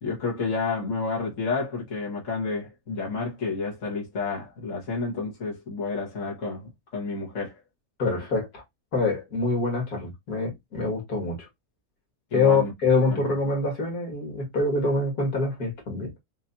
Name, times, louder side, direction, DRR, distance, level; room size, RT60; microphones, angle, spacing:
voice 1, 0.0-7.5 12.3-12.7 13.1-13.3, left 4 dB, 55° left, 1.9 m, -30 dB
voice 2, 8.0-8.6 8.9-11.5 12.3-16.1, left 3 dB, 80° left, 2.5 m, -25 dB
6.5 x 2.8 x 2.7 m
omnidirectional pair, 1.6 m